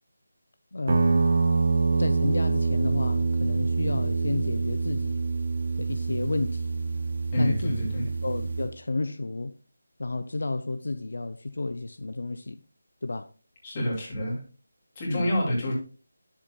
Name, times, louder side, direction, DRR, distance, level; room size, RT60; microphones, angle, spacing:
voice 1, 0.7-1.3 2.0-5.2 5.8-6.6 7.4-7.9 8.2-9.5 10.0-12.6 13.0-13.3 15.1-15.3, left 2 dB, 65° left, 0.5 m, -31 dB
Guitar, 0.9-8.7, right 4 dB, 40° right, 0.9 m, -26 dB
voice 2, 7.3-8.1 13.6-14.4 15.0-15.7, equal, 20° left, 2.4 m, -27 dB
10.0 x 7.1 x 2.3 m
figure-of-eight pair, 175°, 0 cm